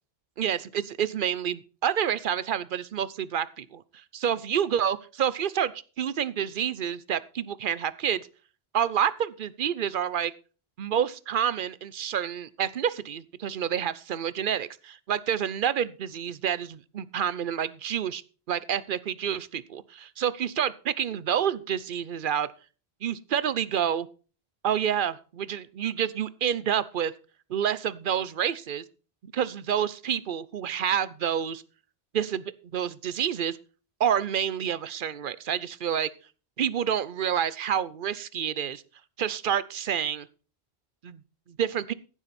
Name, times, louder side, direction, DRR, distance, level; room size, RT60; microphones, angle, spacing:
voice 1, 0.4-3.8 4.1-5.7 6.0-8.2 8.7-10.3 10.8-18.2 18.5-22.5 23.0-24.1 24.6-27.1 27.5-28.8 29.2-31.6 32.1-32.4 32.7-33.6 34.0-36.1 36.6-38.8 39.2-40.3 41.0-41.2 41.6-41.9, right 9 dB, 60° right, 18 dB, 0.8 m, -28 dB
15.0 x 7.4 x 4.2 m, 0.36 s
omnidirectional pair, 1.1 m